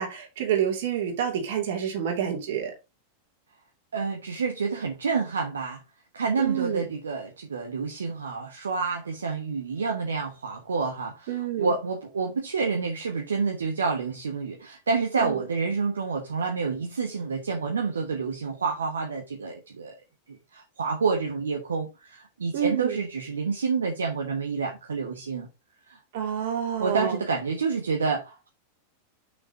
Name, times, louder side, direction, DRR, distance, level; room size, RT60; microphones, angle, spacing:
voice 1, 0.0-2.7 6.4-6.8 11.3-11.7 15.2-15.4 22.5-23.0 26.1-27.2, right 9 dB, 55° right, 2.9 m, -28 dB
voice 2, 3.9-5.8 6.1-19.9 20.3-25.5 25.9-26.0 26.8-28.5, right 4 dB, 70° right, 1.2 m, -28 dB
6.2 x 5.9 x 4.0 m
figure-of-eight pair, 90°, 0 cm